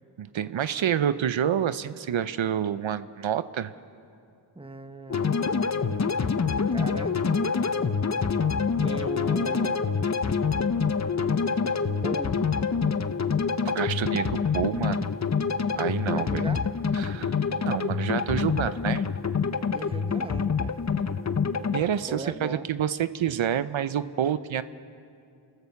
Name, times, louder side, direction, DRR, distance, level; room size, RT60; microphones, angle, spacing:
voice 1, 0.2-3.7 13.6-15.1 15.7-16.5 16.9-19.1 21.6-24.6, right 9 dB, 75° right, 13 dB, 0.7 m, -28 dB
voice 2, 4.5-5.4 6.7-7.2 8.8-9.8 12.0-12.4 15.8-16.6 19.7-20.8 22.1-22.7, right 2 dB, 10° right, 9 dB, 1.0 m, -38 dB
sound 1, 5.1-21.8, left 5 dB, 35° left, 0.8 m, -26 dB
29.5 x 13.5 x 7.1 m, 2.4 s
wide cardioid pair, 70°, 46 cm